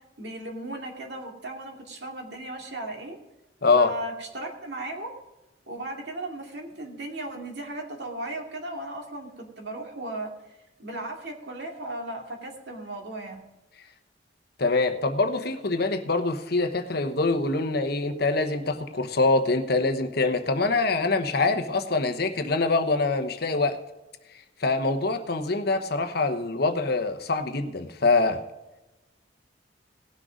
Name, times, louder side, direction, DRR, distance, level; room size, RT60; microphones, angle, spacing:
voice 1, 0.2-3.2 3.7-5.1 5.7-10.3 10.8-13.4, right 1 dB, 60° right, 2 dB, 2.5 m, -36 dB
voice 2, 3.6-3.9 14.6-23.8 24.6-28.4, left 3 dB, 55° left, 8 dB, 1.0 m, -24 dB
18.0 x 6.3 x 5.1 m, 1.0 s
head